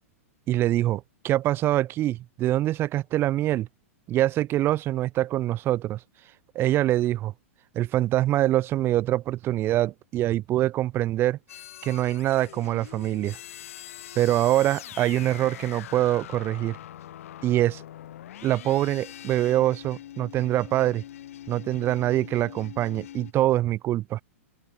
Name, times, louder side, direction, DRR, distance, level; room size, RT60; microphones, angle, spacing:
voice 1, 0.5-3.7 4.1-6.0 6.5-7.3 7.7-11.4 11.8-13.4 14.2-16.8 17.4-17.8 18.4-21.0 21.5-24.2, right 14 dB, 30° right, 0.8 m, -24 dB
sound 1, 11.5-23.3, left 12 dB, 70° left, 6.7 m, -43 dB
open air
hypercardioid pair, 125°, 8 cm